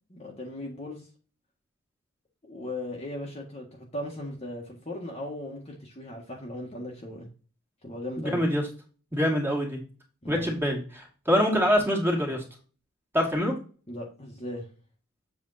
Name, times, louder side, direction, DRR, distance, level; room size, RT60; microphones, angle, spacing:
voice 1, 0.1-1.1 2.4-7.3 7.8-8.4 10.2-10.5 13.9-14.7, left 1 dB, 30° left, -1 dB, 1.6 m, -37 dB
voice 2, 8.2-8.6 9.1-9.8 10.3-12.4 13.1-13.5, equal, 10° right, -1 dB, 2.3 m, -25 dB
7.8 x 4.3 x 4.1 m, 0.37 s
head